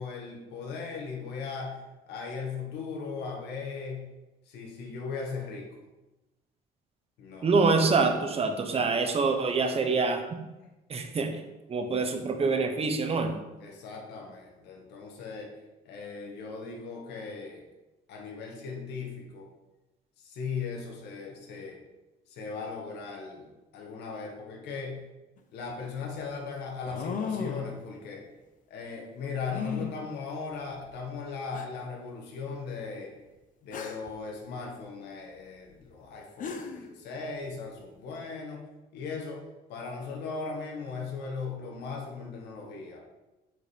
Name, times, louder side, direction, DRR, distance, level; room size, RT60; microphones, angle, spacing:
voice 1, 0.0-1.8 2.1-4.0 4.5-5.7 7.2-7.5 8.9-9.0 13.6-15.5 15.8-17.6 18.1-19.5 20.2-21.8 22.3-23.5 23.7-25.0 25.5-28.2 28.7-33.1 33.6-38.6 38.9-39.4 39.7-43.0, left 5 dB, 80° left, -1 dB, 1.7 m, -38 dB
voice 2, 7.4-10.2 10.9-11.3 11.7-13.3, right 4 dB, 35° right, 5 dB, 1.2 m, -25 dB
sound 1, 25.4-25.5 26.9-27.7 29.5-29.9 30.9-31.0 31.5-31.6 33.7-34.1 36.0-36.1 36.4-36.9, left 6 dB, 50° left, 1.0 m, -35 dB
8.0 x 5.1 x 5.4 m, 1.1 s
cardioid pair, 110°, 17 cm